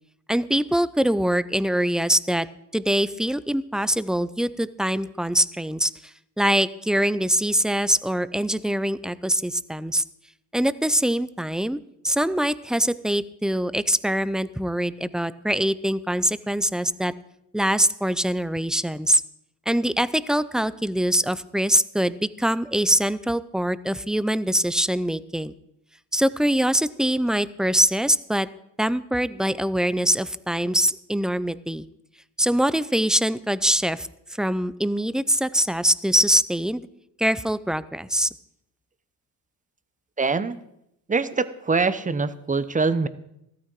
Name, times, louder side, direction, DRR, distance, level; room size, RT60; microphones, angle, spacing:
voice 1, 0.3-2.5 2.7-5.9 6.4-10.0 10.5-11.8 12.0-17.1 17.5-19.2 19.7-25.5 26.1-28.5 28.8-31.9 32.4-34.1 34.4-36.8 37.2-38.3, right 1 dB, ahead, 16 dB, 0.4 m, -23 dB
voice 2, 40.2-40.6 41.1-43.1, right 4 dB, 20° right, 14 dB, 0.9 m, -23 dB
13.5 x 13.0 x 4.6 m, 0.80 s
cardioid pair, 85°, 41 cm